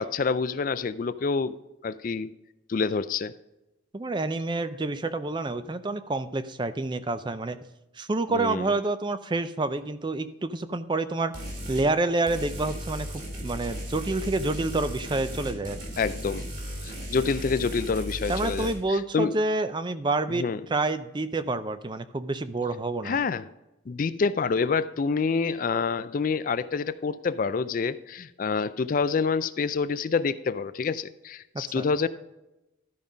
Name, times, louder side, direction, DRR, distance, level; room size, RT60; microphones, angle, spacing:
voice 1, 0.0-1.6 1.8-2.3 2.7-3.3 8.3-8.7 15.5-15.6 16.0-16.4 16.8-19.3 20.3-20.6 23.0-23.4 23.9-32.1, left 5 dB, 45° left, 14 dB, 0.3 m, -27 dB
voice 2, 3.9-7.6 8.0-11.3 11.7-13.1 13.4-15.8 18.3-20.4 20.7-23.2 31.8-31.9, right 2 dB, 25° right, 12 dB, 0.4 m, -28 dB
sound 1, 11.3-11.9 12.3-18.7, equal, 45° right, 3.0 m, -35 dB
12.5 x 5.4 x 4.9 m, 0.94 s
head